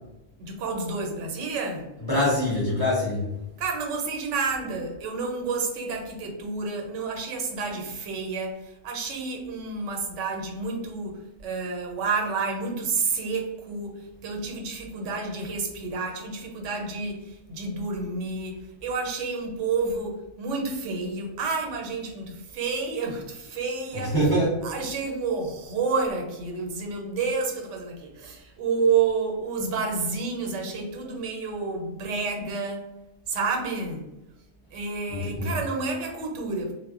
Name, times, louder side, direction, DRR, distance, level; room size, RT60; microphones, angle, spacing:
voice 1, 0.4-1.9 3.6-24.2 24.6-32.9 33.3-34.0 34.7-36.7, right 4 dB, 85° right, 2 dB, 1.0 m, -30 dB
voice 2, 2.0-3.3 23.9-24.5 35.1-35.6, equal, 20° left, -5 dB, 0.7 m, -24 dB
2.1 x 2.0 x 3.6 m, 0.95 s
omnidirectional pair, 1.2 m